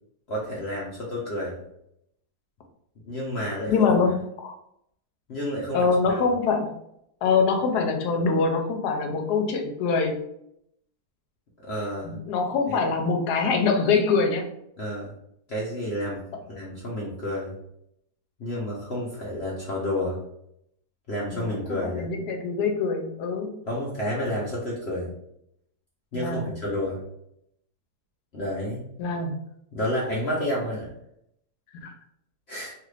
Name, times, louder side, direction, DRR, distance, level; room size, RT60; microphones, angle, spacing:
voice 1, 0.3-1.6 3.1-4.1 5.3-6.2 11.6-12.2 12.7-12.9 14.8-15.1 15.5-16.2 16.5-17.5 18.4-20.2 21.1-22.1 23.7-25.1 26.1-27.0 28.3-28.8 29.7-30.9 32.5-32.7, left 1 dB, 55° left, -5 dB, 0.8 m, -30 dB
voice 2, 3.7-4.5 5.7-6.7 7.2-10.2 12.0-14.5 21.3-23.5 26.1-26.4 29.0-29.3 31.8-31.9, left 4 dB, 80° left, 4 dB, 1.2 m, -24 dB
3.1 x 2.4 x 3.2 m, 0.76 s
omnidirectional pair, 1.7 m